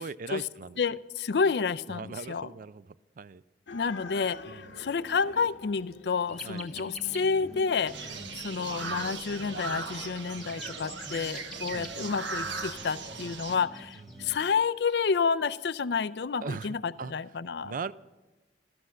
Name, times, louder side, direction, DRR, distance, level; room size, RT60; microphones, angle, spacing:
voice 1, 0.0-0.8 1.9-2.8 3.2-3.4 4.5-4.8 6.4-6.6 8.1-8.2 11.7-11.9 14.1-14.4 16.4-17.1 17.6-17.9, right 4 dB, 45° right, 17 dB, 0.4 m, -39 dB
voice 2, 0.8-2.5 3.7-17.7, left 5 dB, 65° left, 15 dB, 0.5 m, -30 dB
sound 1, 3.7-10.1, left 3 dB, 85° left, 1.2 m, -47 dB
sound 2, 6.3-14.4, equal, ahead, 1.3 m, -46 dB
sound 3, 7.9-13.6, right 4 dB, 85° right, 1.3 m, -38 dB
13.5 x 13.0 x 6.3 m, 1.1 s
head